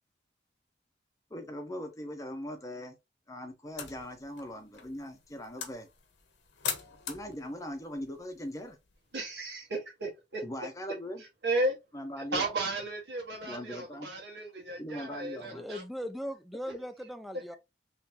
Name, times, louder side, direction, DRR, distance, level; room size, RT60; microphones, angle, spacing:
voice 1, 1.3-3.0 3.3-5.9 7.1-8.8 10.4-11.2 11.9-12.5 13.5-14.1 14.8-15.6, equal, 20° left, 0.8 m, -40 dB
sound 1, 3.7-9.2, left 7 dB, 80° left, 0.9 m, -43 dB
voice 2, 9.1-10.4 11.2-11.8 12.3-15.8, right 2 dB, 70° right, 1.7 m, -34 dB
voice 3, 15.4-17.6, equal, ahead, 0.4 m, -39 dB
3.8 x 3.2 x 2.9 m
head